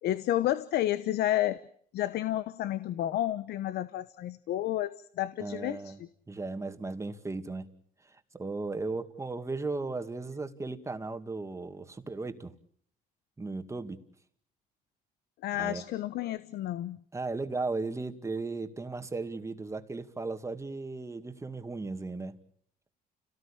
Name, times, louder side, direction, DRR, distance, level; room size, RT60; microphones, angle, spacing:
voice 1, 0.0-1.6 1.9-6.1 15.4-17.0, left 13 dB, 70° left, 15 dB, 1.0 m, -31 dB
voice 2, 5.4-6.0 6.3-7.7 8.0-12.5 13.4-14.0 15.6-15.8 17.1-22.4, right 3 dB, 15° right, 8 dB, 2.2 m, -36 dB
30.0 x 18.0 x 8.7 m, 0.62 s
cardioid pair, 110°, 17 cm